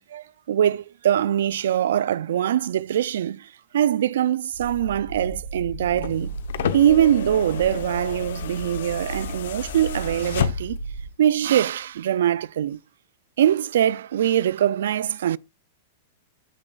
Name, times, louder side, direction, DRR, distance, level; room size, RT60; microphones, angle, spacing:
voice 1, 0.0-6.3 6.7-10.8 11.2-12.8 13.4-15.4, right 10 dB, 70° right, 0.4 m, -22 dB
sound 1, 4.5-11.1, right 2 dB, 40° left, 3.1 m, -35 dB
sound 2, 5.8-11.0 12.2-12.3, left 8 dB, 65° left, 0.9 m, -31 dB
15.0 x 6.1 x 2.4 m
supercardioid pair, 175°, 0 cm